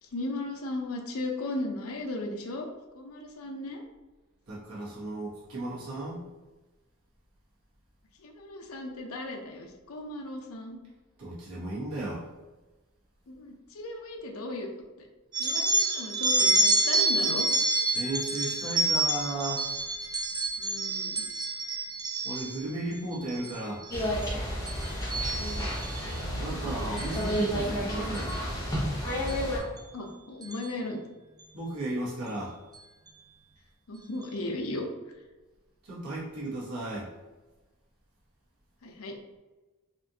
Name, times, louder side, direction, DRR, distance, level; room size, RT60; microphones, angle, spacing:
voice 1, 0.0-2.7 2.9-3.8 8.2-10.8 13.3-14.7 15.0-15.1 15.4-17.5 20.6-21.2 25.3-25.6 29.9-31.0 33.9-34.9 38.8-39.1, left 2 dB, 80° left, 3 dB, 0.6 m, -36 dB
voice 2, 4.5-6.2 11.2-12.2 17.9-19.7 22.2-23.8 26.4-28.3 31.5-32.5 35.8-37.1, right 2 dB, 75° right, -7 dB, 1.4 m, -34 dB
sound 1, 15.3-22.6 23.1-23.5 23.8-24.3 24.7-26.0 27.0-27.2 28.1-28.3 29.3-29.4 29.8-29.9 30.4-30.6, right 2 dB, 20° right, 0.4 m, -28 dB
sound 2, 23.9-29.6, equal, 15° left, 0.9 m, -31 dB
4.2 x 2.5 x 2.8 m, 1.2 s
head